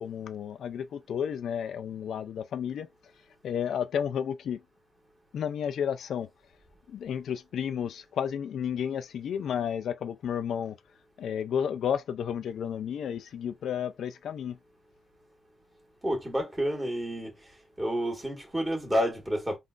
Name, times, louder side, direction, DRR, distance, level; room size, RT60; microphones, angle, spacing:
voice 1, 0.0-2.9 3.4-4.6 5.3-6.3 6.9-10.8 11.2-14.6, left 8 dB, 75° left, 0.3 m, -32 dB
voice 2, 16.0-17.3 17.8-19.6, equal, 10° right, 1.6 m, -29 dB
3.7 x 2.4 x 2.5 m
cardioid pair, 130°, 0 cm